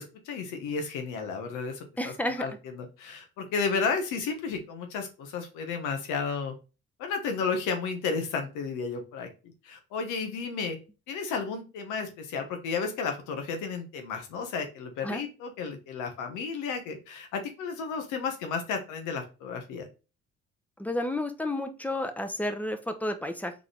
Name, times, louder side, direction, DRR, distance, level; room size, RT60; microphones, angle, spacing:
voice 1, 0.0-2.1 2.4-6.6 7.0-9.3 9.6-10.8 11.1-19.9, left 5 dB, 85° left, 5 dB, 1.1 m, -33 dB
voice 2, 2.0-2.5 15.0-15.2 20.8-23.5, left 1 dB, 5° left, 7 dB, 0.8 m, -31 dB
3.9 x 3.7 x 3.3 m, 0.31 s
supercardioid pair, 65°, 30 cm